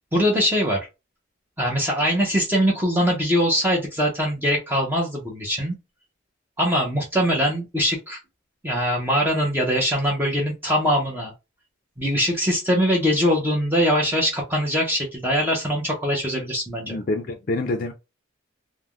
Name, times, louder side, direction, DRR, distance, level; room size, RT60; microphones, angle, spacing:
voice 1, 0.1-0.9 1.6-5.7 6.6-8.2 8.6-11.3 12.0-17.0, equal, 10° right, 0.7 m, -22 dB
voice 2, 16.9-17.9, left 2 dB, 45° left, 0.4 m, -26 dB
3.3 x 2.1 x 2.3 m
head